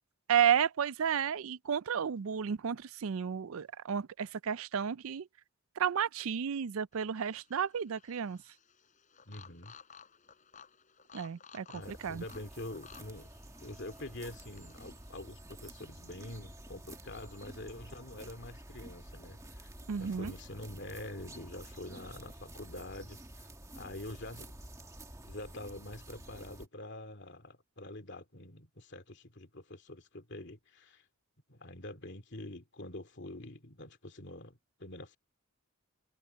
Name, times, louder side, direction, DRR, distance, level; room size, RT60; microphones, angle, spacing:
voice 1, 0.3-5.3 5.8-8.4 11.1-12.2 19.9-20.3, right 8 dB, 70° right, 0.4 m, -32 dB
sound 1, 6.9-15.1, left 7 dB, 35° left, 4.9 m, -57 dB
voice 2, 9.3-9.7 11.7-13.3 13.6-19.7 20.0-23.5 23.7-24.5 25.3-31.0 31.5-35.2, left 1 dB, 50° left, 2.5 m, -46 dB
sound 2, 11.8-26.7, right 1 dB, 15° right, 1.8 m, -50 dB
head